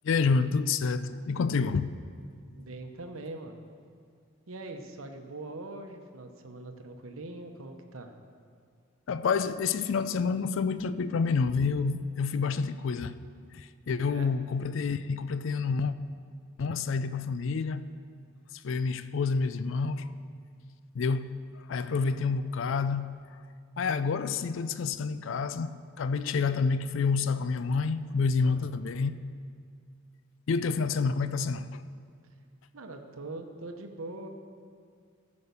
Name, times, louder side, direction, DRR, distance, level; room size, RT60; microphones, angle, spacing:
voice 1, 0.0-1.9 9.1-13.2 13.5-15.9 16.6-17.9 18.6-20.2 20.9-21.4 21.7-23.2 23.8-29.1 30.5-31.8, left 5 dB, 65° left, 0.4 m, -28 dB
voice 2, 2.6-3.6 4.5-8.1 14.1-14.3 28.4-28.8 32.7-34.3, right 2 dB, 80° right, 0.9 m, -42 dB
14.0 x 5.2 x 6.8 m
head